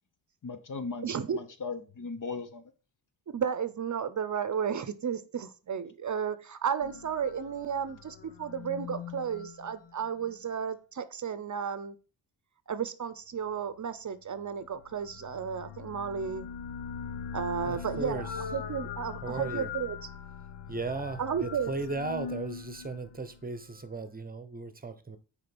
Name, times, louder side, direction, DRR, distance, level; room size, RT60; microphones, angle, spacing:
voice 1, 0.4-2.6, left 4 dB, 45° left, 1.1 m, -38 dB
voice 2, 1.0-1.4 3.3-12.0 12.7-16.5 17.3-20.0 21.2-21.7, right 7 dB, 45° right, 0.7 m, -33 dB
sound 1, 6.8-10.4 14.6-23.9, left 7 dB, 85° left, 1.1 m, -41 dB
voice 3, 17.6-18.3 19.2-19.7 20.7-25.2, right 3 dB, 20° right, 0.9 m, -36 dB
6.5 x 4.8 x 6.0 m
wide cardioid pair, 120°, 43 cm